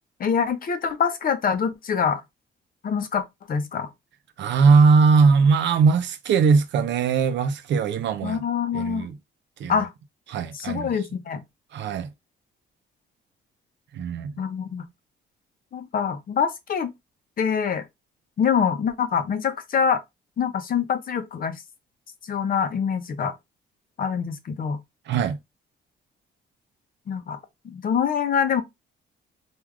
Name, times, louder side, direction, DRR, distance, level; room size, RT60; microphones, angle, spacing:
voice 1, 0.2-2.2 2.8-3.9 8.2-9.1 9.7-9.9 10.5-11.4 14.4-14.9 15.7-16.9 17.4-17.9 18.4-20.0 20.4-21.6 22.2-23.3 24.0-24.8 27.1-27.4 27.6-28.6, left 7 dB, 45° left, 0.6 m, -25 dB
voice 2, 4.4-8.4 8.7-9.2 9.6-9.9 10.3-10.9 11.7-12.1 13.9-14.4 25.1-25.4, right 5 dB, 65° right, 0.5 m, -20 dB
3.2 x 2.4 x 2.3 m
cardioid pair, 90°, 20 cm